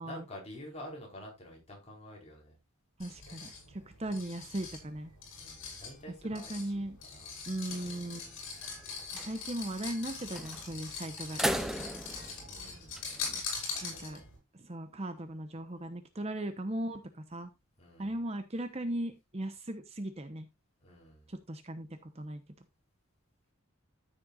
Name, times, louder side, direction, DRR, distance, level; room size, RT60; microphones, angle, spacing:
voice 1, 0.0-2.6 5.4-6.8 7.1-7.3 12.4-13.1 13.7-14.3 17.8-18.1 20.8-21.3, left 1 dB, 30° left, 4.7 m, -48 dB
sound 1, 3.0-14.4, left 4 dB, 60° left, 6.8 m, -42 dB
voice 2, 3.0-5.1 6.2-7.0 7.5-8.3 9.2-11.4 11.8-11.9 13.8-14.2 14.6-17.5 18.0-20.5 21.3-22.4, right 1 dB, 30° right, 0.9 m, -38 dB
sound 2, 7.7-8.2 8.6-8.7 9.0-9.3 10.3-10.8 11.2-13.4, equal, ahead, 0.7 m, -36 dB
13.5 x 7.7 x 2.5 m
head